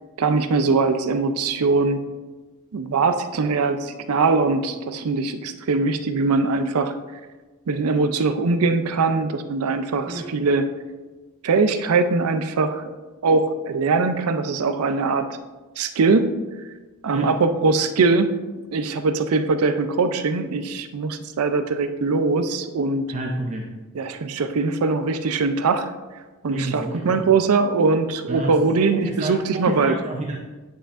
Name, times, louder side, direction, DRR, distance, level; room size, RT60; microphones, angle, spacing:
voice 1, 0.2-2.0 2.7-7.0 7.7-10.7 11.4-12.8 13.2-15.3 15.8-16.3 17.0-18.3 18.7-23.0 23.9-25.9 26.4-29.9, right 4 dB, 75° right, 9 dB, 0.5 m, -21 dB
voice 2, 23.1-23.7 26.5-27.3 28.3-28.6 28.9-30.4, right 2 dB, 30° right, 0 dB, 0.6 m, -29 dB
9.8 x 5.6 x 2.5 m, 1.2 s
head